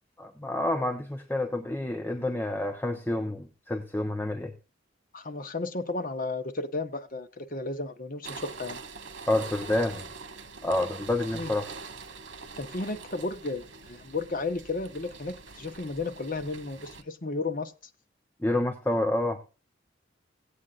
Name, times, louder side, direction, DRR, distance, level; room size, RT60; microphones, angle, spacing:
voice 1, 0.2-4.5 9.3-10.0 10.6-11.7 18.4-19.4, left 1 dB, 10° left, 0.9 m, -28 dB
voice 2, 5.1-8.8 11.3-11.5 12.6-17.7, left 3 dB, 50° left, 1.0 m, -33 dB
sound 1, 8.2-17.0, right 4 dB, 75° right, 1.5 m, -44 dB
17.5 x 8.3 x 2.5 m
head